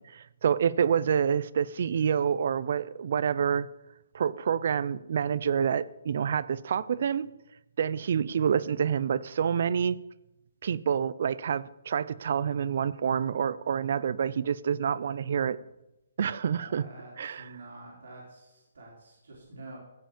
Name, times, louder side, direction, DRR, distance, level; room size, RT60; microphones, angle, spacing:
voice 1, 0.0-3.7 4.1-7.3 7.8-10.0 10.6-15.6 16.2-16.9 17.2-17.6, right 7 dB, 50° right, 19 dB, 0.5 m, -27 dB
voice 2, 16.5-19.8, right 2 dB, 75° right, -3 dB, 4.0 m, -48 dB
15.0 x 5.6 x 7.3 m, 0.91 s
hypercardioid pair, 165°, 0 cm